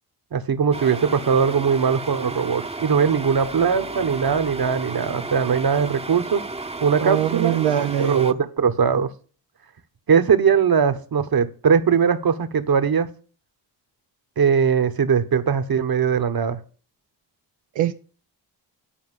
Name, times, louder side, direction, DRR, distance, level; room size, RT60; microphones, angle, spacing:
voice 1, 0.3-6.4 6.8-7.6 8.0-9.1 10.1-13.1 14.4-16.6, right 6 dB, 55° right, 1.3 m, -20 dB
sound 1, 0.7-8.3, right 3 dB, 15° right, 0.8 m, -33 dB
voice 2, 7.0-8.3 17.8-17.9, right 11 dB, 85° right, 0.7 m, -22 dB
10.5 x 4.6 x 7.4 m
supercardioid pair, 45°, 44 cm